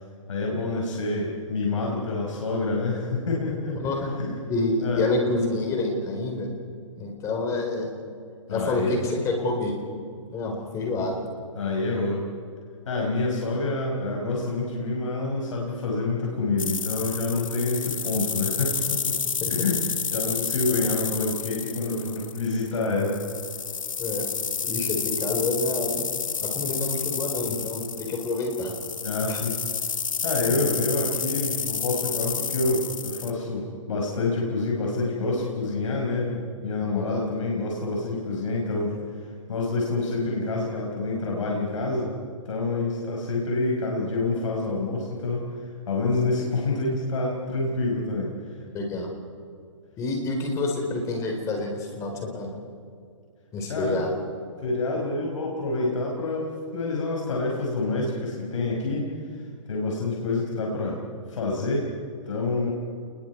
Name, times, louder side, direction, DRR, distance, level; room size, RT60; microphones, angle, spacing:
voice 1, 0.3-3.8 4.2-4.3 4.8-5.1 8.5-8.9 11.6-12.2 12.9-19.2 19.5-23.2 29.0-29.5 30.2-42.1 42.5-48.3 53.7-54.0 54.6-59.4 59.7-61.0 61.3-61.9 62.3-62.7, left 3 dB, 75° left, -2 dB, 5.4 m, -27 dB
voice 2, 3.7-4.1 4.5-6.5 7.0-7.9 8.5-9.8 10.3-11.2 19.4-19.5 24.0-24.3 24.6-26.1 26.4-28.7 29.3-29.4 30.5-30.6 36.8-37.2 48.7-49.1 50.0-52.5 53.5-54.1, left 2 dB, 20° left, 2 dB, 4.4 m, -28 dB
sound 1, 16.6-33.3, left 6 dB, 90° left, 1.7 m, -30 dB
28.5 x 21.5 x 4.7 m, 2.3 s
hypercardioid pair, 155°, 17 cm